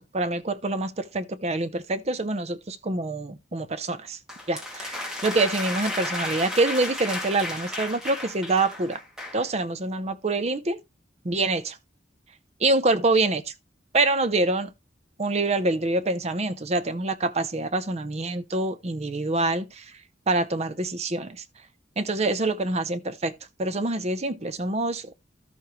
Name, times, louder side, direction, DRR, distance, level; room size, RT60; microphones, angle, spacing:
voice 1, 0.1-4.2 4.5-9.0 9.3-10.8 11.2-11.7 12.6-13.5 13.9-14.7 15.2-19.9 20.3-21.4 22.0-23.3 23.6-25.1, right 2 dB, 35° right, 0.7 m, -26 dB
sound 1, 4.3-9.5, left 1 dB, 5° right, 2.5 m, -33 dB
12.5 x 6.7 x 3.1 m
head